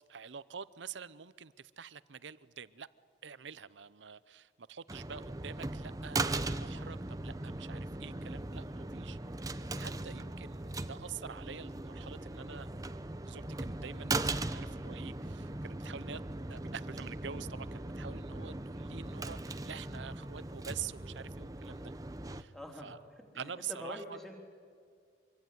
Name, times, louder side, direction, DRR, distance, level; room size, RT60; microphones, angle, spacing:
voice 1, 0.1-2.9 3.2-12.7 13.3-16.2 16.5-21.9 22.3-22.5 22.8-23.0 23.3-24.2, right 7 dB, 85° right, 17 dB, 0.7 m, -46 dB
sound 1, 4.9-22.4, right 2 dB, 20° right, 0.7 m, -39 dB
voice 2, 10.2-10.7 22.5-22.9 23.3-24.3, left 1 dB, ahead, 1 dB, 3.5 m, -46 dB
25.0 x 23.5 x 9.4 m, 2.2 s
head